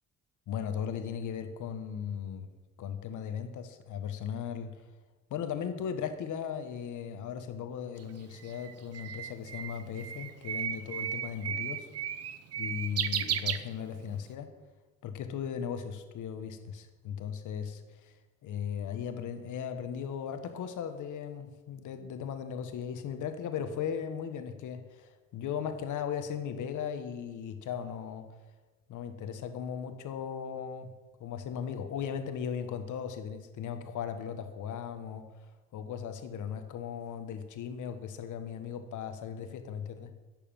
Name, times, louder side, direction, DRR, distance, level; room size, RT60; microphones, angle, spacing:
voice 1, 0.5-2.5 2.8-4.7 5.3-11.9 12.5-14.5 15.0-18.1 18.4-28.3 28.9-30.9 31.2-35.3 35.7-40.1, left 8 dB, 80° left, 8 dB, 1.4 m, -37 dB
Bird, 8.0-14.2, right 9 dB, 55° right, 0.8 m, -35 dB
11.5 x 6.9 x 8.8 m, 1.2 s
cardioid pair, 90°, 30 cm